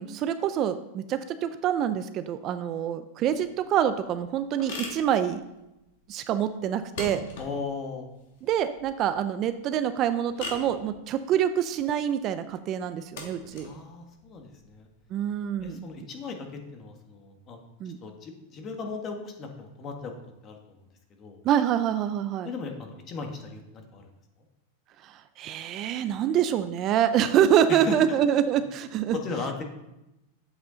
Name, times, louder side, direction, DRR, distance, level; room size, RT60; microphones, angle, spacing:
voice 1, 0.0-5.4 6.1-7.2 8.4-13.7 15.1-15.9 17.8-18.0 21.4-22.5 25.0-29.2, right 9 dB, 35° right, 11 dB, 0.4 m, -26 dB
sound 1, 3.2-15.6, left 3 dB, 70° left, 2.4 m, -44 dB
voice 2, 7.4-8.1 13.6-14.9 15.6-17.6 18.0-20.1 20.4-20.8 21.2-21.4 22.4-24.1 27.7-27.9 29.1-29.6, left 4 dB, 30° left, 4 dB, 1.4 m, -37 dB
8.0 x 7.9 x 3.9 m, 0.92 s
supercardioid pair, 140°, 0 cm